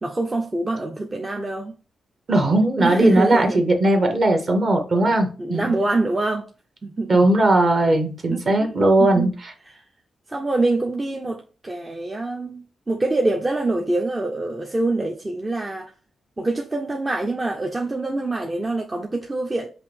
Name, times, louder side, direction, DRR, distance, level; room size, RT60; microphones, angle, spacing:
voice 1, 0.0-1.8 2.8-3.7 5.0-5.1 5.4-6.5 6.8-7.4 8.3-9.3 9.7-9.8 10.3-15.9 16.4-19.7, right 2 dB, 20° right, 0.5 m, -25 dB
voice 2, 2.3-5.8 7.1-9.5, right 1 dB, 45° right, 1.1 m, -18 dB
5.5 x 2.6 x 3.4 m
cardioid pair, 115°, 0 cm